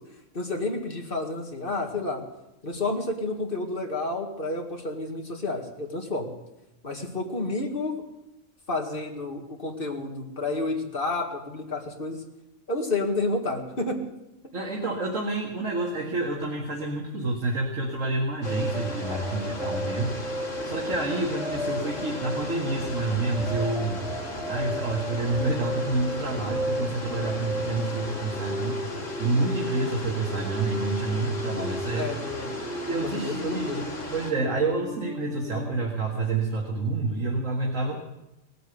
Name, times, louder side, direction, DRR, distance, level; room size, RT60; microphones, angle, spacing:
voice 1, 0.3-2.2 2.6-6.3 6.8-8.0 8.7-12.2 12.7-14.0 31.9-32.5 32.8-33.8, left 2 dB, 45° left, 2 dB, 2.3 m, -30 dB
voice 2, 14.5-20.1 20.6-24.0 24.5-28.8 29.2-32.1 32.9-33.8 34.1-38.0, right 3 dB, 90° right, -2 dB, 2.2 m, -28 dB
sound 1, 18.4-34.3, left 2 dB, 90° left, 2.5 m, -36 dB
sound 2, 18.5-35.9, equal, 5° right, 0.4 m, -35 dB
18.5 x 9.3 x 8.1 m, 0.94 s
omnidirectional pair, 1.3 m